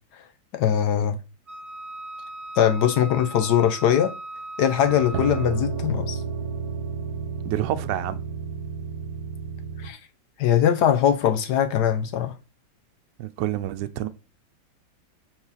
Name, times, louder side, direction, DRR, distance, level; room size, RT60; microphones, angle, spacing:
voice 1, 0.5-1.2 2.6-4.1 4.6-6.2 9.8-10.0 10.4-12.4, left 9 dB, 70° left, 1.1 m, -21 dB
Wind instrument woodwind instrument, 1.5-5.7, right 2 dB, 10° right, 1.6 m, -38 dB
sound 1, 4.8-9.9, right 5 dB, 55° right, 1.3 m, -31 dB
voice 2, 7.4-8.2 13.2-14.1, right 12 dB, 75° right, 1.2 m, -28 dB
7.7 x 4.0 x 4.0 m
omnidirectional pair, 2.1 m